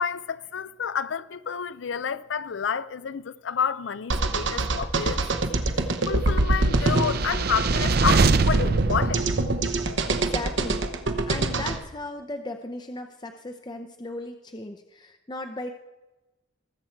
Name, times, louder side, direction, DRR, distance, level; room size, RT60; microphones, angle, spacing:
voice 1, 0.0-5.4 6.0-9.3, left 7 dB, 75° left, 0.5 m, -29 dB
sound 1, 4.1-11.8, right 2 dB, 70° right, 0.9 m, -25 dB
sound 2, 6.6-10.1, right 4 dB, 55° right, 0.5 m, -24 dB
voice 2, 10.1-15.7, left 2 dB, 25° left, 0.6 m, -36 dB
19.5 x 7.8 x 4.5 m
head